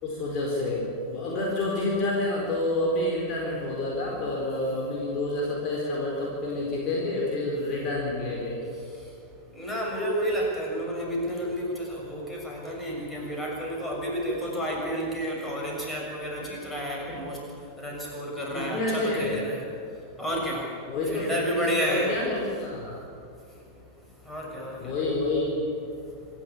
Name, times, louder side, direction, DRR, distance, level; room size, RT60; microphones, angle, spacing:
voice 1, 0.0-8.6 17.1-17.2 18.5-19.4 20.9-23.0 24.8-25.7, left 2 dB, 35° left, -3 dB, 4.3 m, -28 dB
voice 2, 9.5-17.4 17.8-19.6 20.2-20.6 21.1-22.1 24.2-24.9, equal, 10° left, -2 dB, 6.8 m, -30 dB
26.5 x 12.0 x 8.6 m, 2.5 s
figure-of-eight pair, 90°, 0 cm